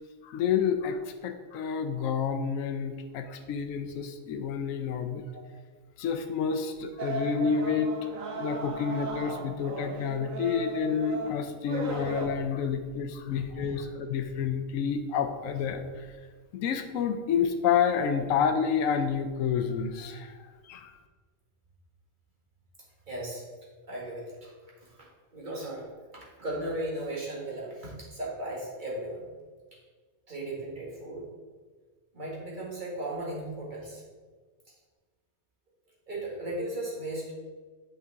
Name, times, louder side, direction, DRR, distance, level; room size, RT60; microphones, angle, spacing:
voice 1, 0.2-5.2 6.0-7.9 8.3-16.1 16.5-20.9, left 7 dB, 75° left, 7 dB, 1.0 m, -29 dB
sound 1, 7.0-12.3, right 3 dB, 75° right, 1.3 m, -36 dB
voice 2, 13.3-13.7 23.1-23.4 23.9-24.5 24.8-25.1 25.3-25.8 26.1-29.3 30.3-31.3 32.1-34.0 36.1-37.3, right 1 dB, 35° right, -5 dB, 2.0 m, -36 dB
8.3 x 5.7 x 3.5 m, 1.5 s
omnidirectional pair, 1.4 m